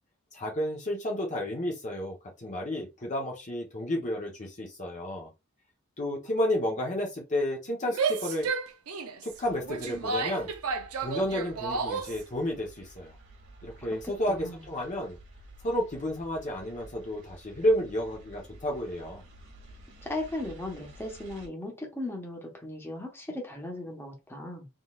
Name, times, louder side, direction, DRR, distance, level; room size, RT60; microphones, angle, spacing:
voice 1, 0.3-5.3 6.0-8.5 9.2-10.5 11.0-13.1 13.6-15.2 15.6-19.2, left 1 dB, 35° left, 0 dB, 1.0 m, -31 dB
Female speech woman speaking / Yell, 7.8-12.2, right 4 dB, 85° right, 0.7 m, -32 dB
sound 1, 9.3-21.5, right 2 dB, 60° right, 1.7 m, -52 dB
voice 2, 14.3-14.6 20.0-24.7, left 1 dB, 10° left, 1 dB, 1.1 m, -37 dB
3.9 x 3.8 x 2.4 m, 0.25 s
head